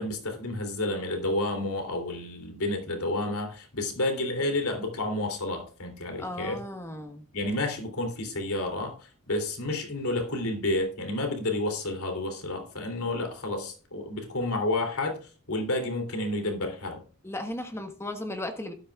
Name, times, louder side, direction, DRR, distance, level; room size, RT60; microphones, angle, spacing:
voice 1, 0.0-6.6 7.3-15.2 15.5-17.0, left 2 dB, 90° left, 5 dB, 3.1 m, -30 dB
voice 2, 6.2-7.2 17.2-18.7, left 1 dB, 10° left, 6 dB, 1.3 m, -35 dB
12.5 x 11.5 x 2.4 m, 0.37 s
head